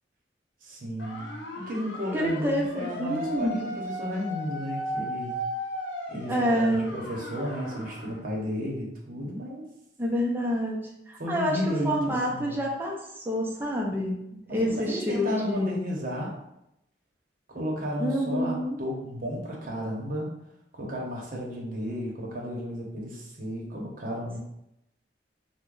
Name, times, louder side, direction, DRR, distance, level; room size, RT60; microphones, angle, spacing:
voice 1, 0.6-1.3 1.6-5.4 6.1-9.7 11.2-12.5 14.5-16.4 17.5-20.3 20.7-24.4, equal, 50° right, -2 dB, 0.8 m, -33 dB
sound 1, 1.0-8.2, equal, 85° left, 0.5 m, -36 dB
voice 2, 2.1-3.6 6.3-6.8 10.0-10.8 11.1-11.6 11.8-15.8 18.0-18.8, equal, 10° right, -3 dB, 0.5 m, -28 dB
3.0 x 2.2 x 3.7 m, 0.82 s
head